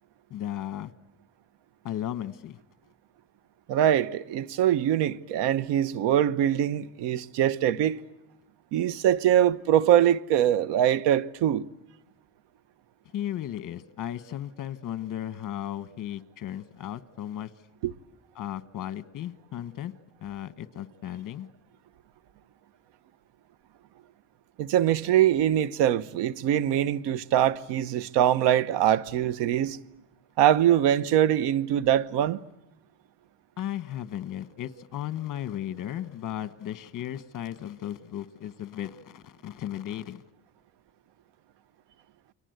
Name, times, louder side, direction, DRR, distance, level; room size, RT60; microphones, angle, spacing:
voice 1, 0.3-0.9 1.8-2.6 13.1-17.5 18.3-19.9 20.2-21.5 33.6-40.2, left 11 dB, 50° left, 1.4 m, -35 dB
voice 2, 3.7-8.0 8.7-11.7 17.8-17.9 24.6-29.8 30.4-32.4, right 11 dB, 80° right, 1.1 m, -23 dB
29.5 x 24.5 x 8.1 m
cardioid pair, 115°, 41 cm